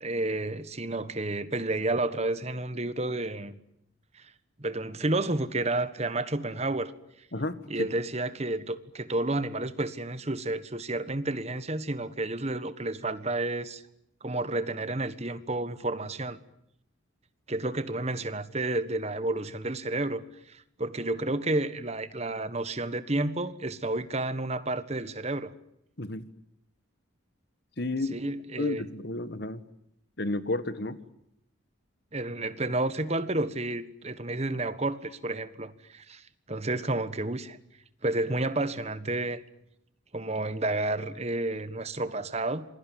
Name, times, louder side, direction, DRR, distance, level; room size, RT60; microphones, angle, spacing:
voice 1, 0.0-3.6 4.6-6.9 7.7-13.8 14.2-16.4 17.5-25.5 28.1-28.8 32.1-37.6 38.0-39.4 40.1-42.6, right 2 dB, 30° right, 1.5 m, -31 dB
voice 2, 7.3-7.9 26.0-26.3 27.8-28.2 28.6-29.6 30.2-31.0, left 2 dB, 55° left, 1.7 m, -32 dB
27.5 x 22.0 x 9.4 m
head